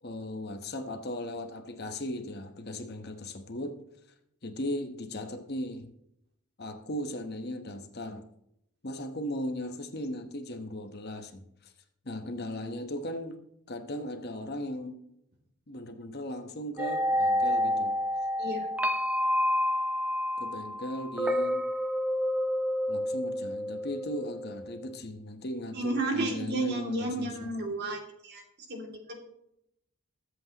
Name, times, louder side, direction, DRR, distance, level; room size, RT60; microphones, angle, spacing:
voice 1, 0.0-3.8 4.4-5.9 6.6-8.2 8.8-11.7 12.0-13.4 13.7-15.0 15.7-18.0 20.4-21.7 22.9-27.5, left 1 dB, 45° left, 6 dB, 1.1 m, -37 dB
sound 1, 16.8-24.8, left 1 dB, 5° right, 0.7 m, -29 dB
voice 2, 25.7-28.4 28.7-29.2, right 1 dB, 45° right, 2 dB, 2.6 m, -32 dB
21.5 x 8.1 x 3.0 m, 0.78 s
head